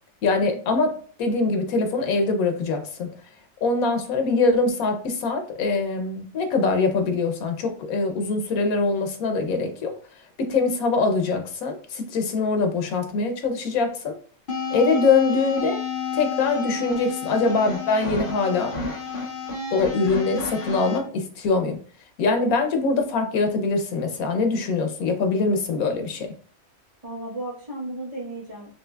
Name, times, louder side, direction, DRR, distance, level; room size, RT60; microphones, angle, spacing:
voice 1, 0.2-0.9 1.2-3.1 3.6-9.9 10.4-14.1 14.7-15.8 16.1-18.7 19.7-21.8 22.2-26.3, left 3 dB, 90° left, 5 dB, 1.2 m, -23 dB
sound 1, 14.5-21.0, left 5 dB, 45° left, 0.8 m, -30 dB
voice 2, 27.0-28.7, right 2 dB, 30° right, -4 dB, 1.2 m, -35 dB
5.8 x 2.7 x 2.3 m, 0.43 s
omnidirectional pair, 1.5 m